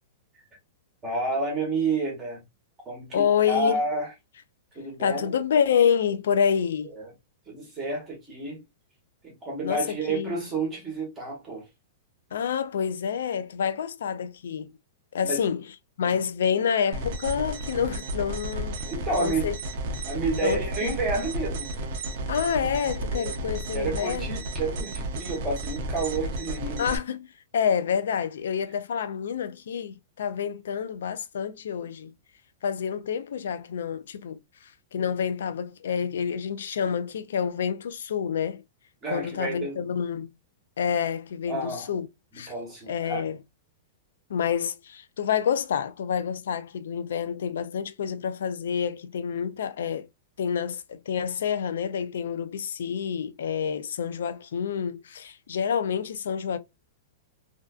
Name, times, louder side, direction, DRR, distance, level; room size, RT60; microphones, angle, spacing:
voice 1, 1.0-2.4 2.9-4.1 4.7-5.3 7.0-7.1 7.5-8.6 9.2-11.6 15.2-15.4 16.0-16.1 18.8-19.5 20.0-21.8 23.1-23.3 23.7-26.9 39.0-39.8 41.5-41.9 42.5-43.2, right 3 dB, 15° right, 0.9 m, -30 dB
voice 2, 3.1-3.8 5.0-6.9 9.6-10.4 12.3-14.8 15.1-15.6 16.0-18.8 19.2-19.5 20.4-20.9 22.3-24.4 26.8-27.3 27.5-32.1 32.6-38.6 39.1-40.3 40.8-42.1 42.3-42.5 42.9-43.4 44.3-50.1 50.4-56.6, left 7 dB, 85° left, 0.3 m, -28 dB
sound 1, 16.9-27.0, right 1 dB, 45° right, 0.5 m, -33 dB
2.4 x 2.3 x 2.3 m
supercardioid pair, 170°, 0 cm